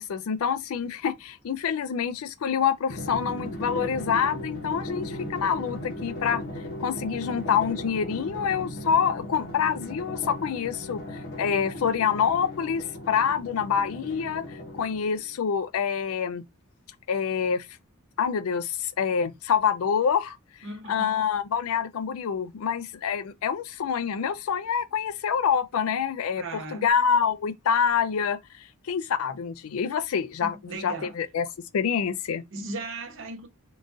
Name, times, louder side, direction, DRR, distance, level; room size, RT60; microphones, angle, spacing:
voice 1, 0.0-6.4 6.8-16.4 17.1-17.7 18.2-20.4 20.9-31.5 31.7-32.4, left 7 dB, 70° left, 0.4 m, -26 dB
Drum, 2.9-15.3, left 1 dB, 50° left, 0.8 m, -37 dB
voice 2, 20.6-21.1 26.3-26.9 30.4-31.1 32.5-33.5, right 2 dB, 60° right, 0.8 m, -37 dB
3.7 x 2.4 x 2.5 m
head